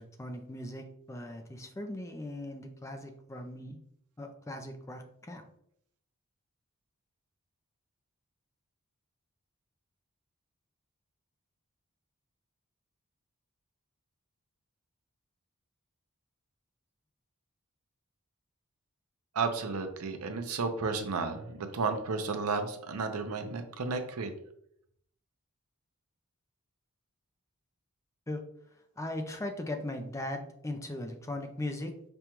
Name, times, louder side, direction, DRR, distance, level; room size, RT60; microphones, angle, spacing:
voice 1, 0.0-3.8 4.2-5.4 28.3-28.4 29.0-31.9, left 1 dB, 15° left, 4 dB, 0.4 m, -39 dB
voice 2, 19.3-24.3, right 4 dB, 80° right, 7 dB, 0.6 m, -33 dB
5.1 x 2.2 x 3.0 m, 0.70 s
head